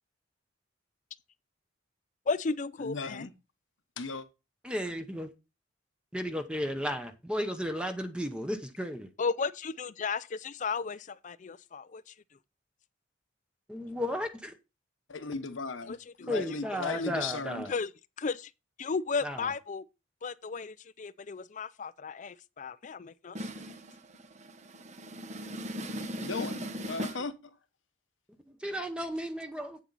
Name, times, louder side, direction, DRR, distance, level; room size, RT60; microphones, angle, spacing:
voice 1, 2.3-3.3 9.2-12.1 15.9-16.0 16.3-16.4 16.9-17.0 17.7-17.9 18.2-18.5 18.8-19.9 20.2-23.4, left 4 dB, 40° left, 0.4 m, -34 dB
voice 2, 2.8-3.3 4.0-4.3 15.1-17.7 26.2-27.3, left 4 dB, 85° left, 1.1 m, -36 dB
voice 3, 4.6-5.3 6.1-9.1 13.7-14.5 16.3-17.7 19.2-19.5 28.5-29.8, equal, 5° right, 0.9 m, -34 dB
voice 4, 23.3-27.2, equal, 35° right, 1.1 m, -39 dB
8.6 x 7.2 x 4.0 m
head